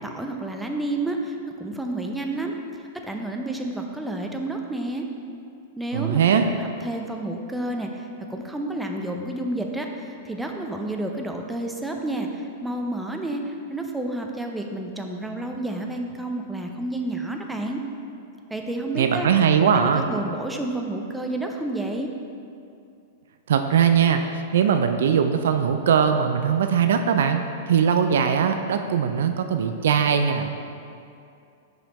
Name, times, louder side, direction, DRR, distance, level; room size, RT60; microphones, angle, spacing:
voice 1, 0.0-2.5 3.0-5.1 5.8-17.8 18.5-19.3 19.6-22.1, right 1 dB, 5° right, 2 dB, 0.6 m, -30 dB
voice 2, 5.9-6.4 19.0-20.1 23.5-30.5, right 7 dB, 70° right, 7 dB, 0.3 m, -20 dB
5.8 x 5.0 x 4.1 m, 2.5 s
hypercardioid pair, 105°, 0 cm